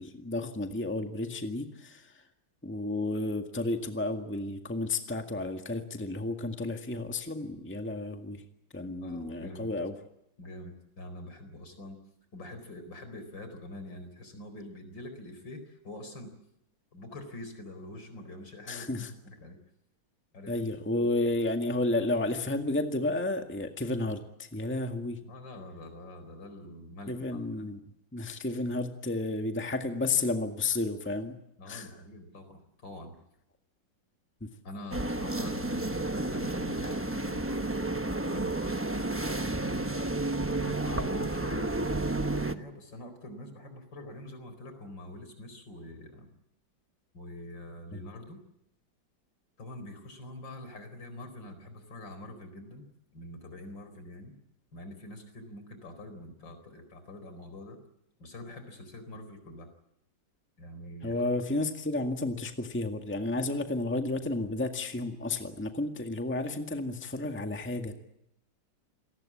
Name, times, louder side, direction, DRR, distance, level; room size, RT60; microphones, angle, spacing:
voice 1, 0.0-2.2 2.6-8.4 8.7-9.9 18.7-19.1 20.5-25.2 27.1-27.8 28.1-31.4 31.7-32.0 34.4-34.5 47.9-48.0 61.0-67.9, left 2 dB, 5° left, 5 dB, 1.7 m, -32 dB
voice 2, 9.0-9.7 10.4-12.0 12.3-16.3 16.9-19.6 20.3-20.7 25.3-27.4 31.6-33.2 34.6-37.6 38.3-39.9 40.5-46.3 47.1-48.4 49.6-52.9 53.1-54.3 54.7-57.8 58.2-59.7 60.6-61.2, left 1 dB, 65° left, 9 dB, 5.1 m, -45 dB
sound 1, 34.9-42.5, right 2 dB, 15° right, 0.5 m, -31 dB
27.5 x 19.5 x 8.7 m, 0.80 s
omnidirectional pair, 2.1 m